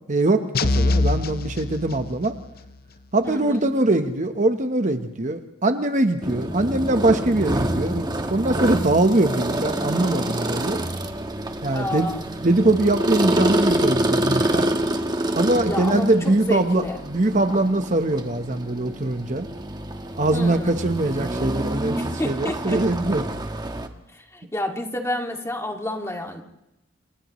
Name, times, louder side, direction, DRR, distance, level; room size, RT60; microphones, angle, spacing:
voice 1, 0.1-2.4 3.1-10.8 11.6-12.1 12.4-14.7 15.3-19.5 20.2-22.0 22.2-23.3, right 2 dB, 40° right, 7 dB, 1.1 m, -22 dB
sound 1, 0.5-2.4, left 2 dB, 50° left, 0.8 m, -23 dB
voice 2, 3.2-3.6 11.7-12.2 15.7-17.0 20.3-20.8 21.9-22.8 24.1-26.4, left 1 dB, 15° left, 2 dB, 2.3 m, -30 dB
sound 2, 6.2-23.9, right 1 dB, 20° right, 1.4 m, -27 dB
30.0 x 28.0 x 3.2 m, 0.87 s
head